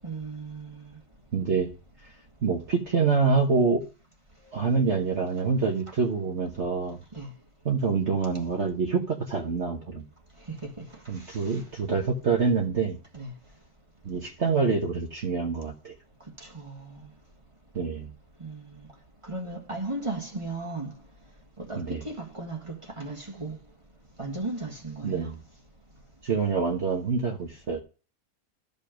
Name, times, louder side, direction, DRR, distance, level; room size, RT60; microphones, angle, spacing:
voice 1, 0.0-1.0 7.1-7.3 10.5-10.8 11.3-11.6 11.9-12.0 13.1-13.3 16.4-17.1 18.4-18.9 19.2-20.9 21.6-23.6 24.2-25.3, right 2 dB, 20° right, 1.5 m, -36 dB
voice 2, 1.3-1.7 2.4-3.8 4.5-7.0 7.6-10.0 11.1-13.0 14.0-15.9 17.7-18.1 21.7-22.0 25.0-25.4 26.2-27.8, right 5 dB, 45° right, 1.3 m, -26 dB
13.5 x 5.5 x 5.1 m
omnidirectional pair, 1.7 m